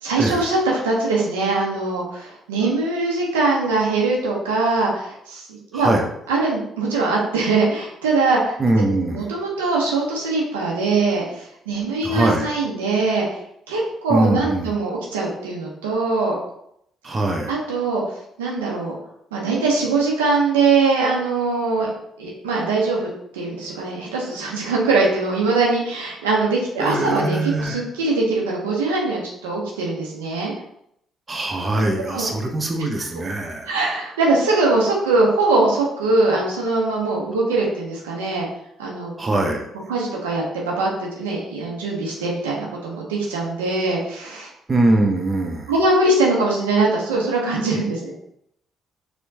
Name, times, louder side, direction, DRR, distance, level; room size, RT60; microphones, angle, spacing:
voice 1, 0.0-5.9 6.3-8.6 9.1-13.4 13.7-16.4 17.5-18.0 18.4-18.9 19.3-21.9 22.2-30.5 32.1-32.3 33.7-38.5 38.8-39.1 39.9-44.5 45.7-48.1, right 3 dB, 90° right, -2 dB, 0.6 m, -22 dB
voice 2, 5.7-6.1 8.6-9.3 12.0-12.5 14.1-14.7 17.0-17.5 26.8-27.8 31.3-33.8 39.2-39.6 44.7-45.7, right 2 dB, 35° right, 2 dB, 0.7 m, -22 dB
4.4 x 2.2 x 2.7 m, 0.73 s
hypercardioid pair, 50°, 0 cm